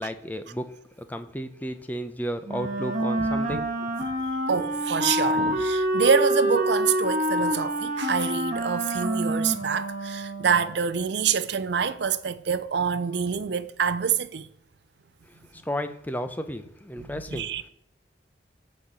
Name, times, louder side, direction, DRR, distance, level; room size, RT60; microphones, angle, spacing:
voice 1, 0.0-3.9 15.3-17.5, equal, 10° left, 0.6 m, -33 dB
Wind instrument woodwind instrument, 2.4-10.7, right 1 dB, 40° right, 1.5 m, -27 dB
voice 2, 3.2-3.6 4.5-14.5 17.3-17.7, right 6 dB, 65° right, 0.5 m, -26 dB
10.5 x 4.3 x 7.5 m
head